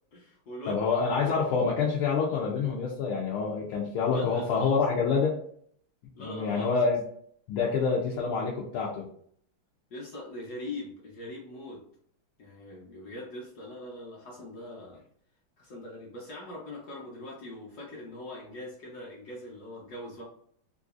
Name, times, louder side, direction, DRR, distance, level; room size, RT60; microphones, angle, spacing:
voice 1, 0.1-0.8 1.2-1.3 4.1-4.8 6.1-6.9 9.9-11.8 12.4-15.0 15.6-20.2, left 1 dB, 60° left, -3 dB, 1.2 m, -42 dB
voice 2, 0.7-5.3 6.2-7.0 7.5-9.0, left 5 dB, 85° left, -4 dB, 1.6 m, -27 dB
3.9 x 2.5 x 2.4 m, 0.63 s
omnidirectional pair, 2.3 m